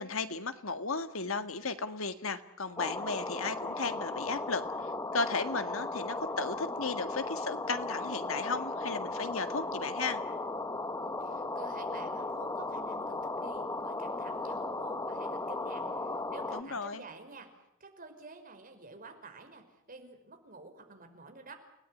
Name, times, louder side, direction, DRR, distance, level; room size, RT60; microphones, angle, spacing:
voice 1, 0.0-10.2 16.5-17.0, left 4 dB, 70° left, 10 dB, 1.9 m, -35 dB
sound 1, 2.8-16.6, left 2 dB, 15° left, 1.3 m, -36 dB
voice 2, 11.0-17.5 17.8-21.5, right 3 dB, 40° right, 5 dB, 5.3 m, -50 dB
29.5 x 18.5 x 9.9 m, 0.83 s
head